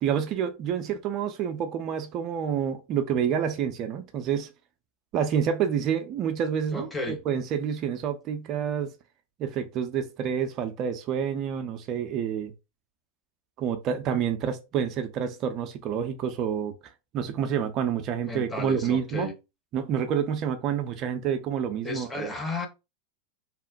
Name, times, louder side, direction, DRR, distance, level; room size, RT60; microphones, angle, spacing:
voice 1, 0.0-4.5 5.1-8.9 9.4-12.5 13.6-16.7 17.1-19.3 19.7-22.3, right 8 dB, 35° right, 0.4 m, -28 dB
voice 2, 6.7-7.2 18.2-19.4 21.8-22.7, left 2 dB, 10° left, 0.7 m, -33 dB
2.8 x 2.0 x 2.5 m
figure-of-eight pair, 90°, 0 cm